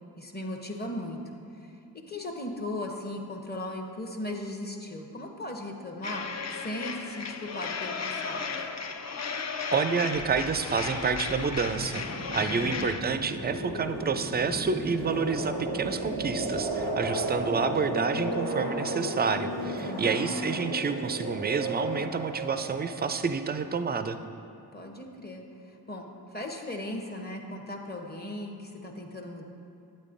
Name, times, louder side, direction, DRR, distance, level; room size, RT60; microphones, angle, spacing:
voice 1, 0.2-1.2 1.5-8.4 12.4-12.9 19.8-20.3 24.7-29.4, left 1 dB, 25° left, 2 dB, 0.8 m, -38 dB
sound 1, 6.0-13.0, left 5 dB, 40° left, 0.5 m, -35 dB
voice 2, 9.7-12.1 12.3-24.2, right 5 dB, 25° right, 10 dB, 0.3 m, -29 dB
sound 2, 10.2-23.5, right 1 dB, 85° left, 1.8 m, -34 dB
8.8 x 8.3 x 2.5 m, 2.5 s
cardioid pair, 60°, 42 cm